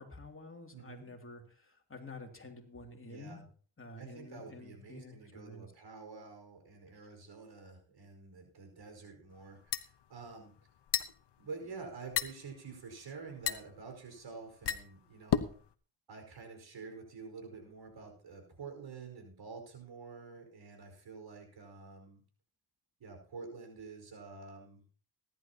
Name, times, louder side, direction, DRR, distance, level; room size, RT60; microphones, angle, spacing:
voice 1, 0.0-3.4 3.8-5.7 6.9-7.1, left 2 dB, 25° left, 3 dB, 2.7 m, -50 dB
voice 2, 0.7-1.1 3.0-3.5 4.0-10.6 11.4-15.6 16.1-22.2 23.0-24.8, right 4 dB, 65° right, 4 dB, 4.9 m, -48 dB
sound 1, 9.3-15.7, left 9 dB, 60° left, 1.0 m, -36 dB
20.0 x 11.0 x 2.9 m, 0.42 s
cardioid pair, 55°, 47 cm